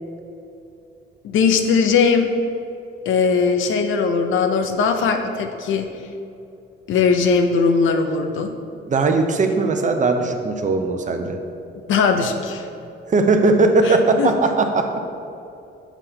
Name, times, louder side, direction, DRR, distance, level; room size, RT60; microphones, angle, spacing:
voice 1, 1.2-2.3 3.1-5.9 6.9-8.5 11.9-12.7 13.8-14.3, left 5 dB, 75° left, 6 dB, 0.6 m, -19 dB
voice 2, 8.9-11.4 13.1-15.0, right 3 dB, 40° right, 5 dB, 0.6 m, -18 dB
7.2 x 5.5 x 3.3 m, 2.7 s
cardioid pair, 90°, 20 cm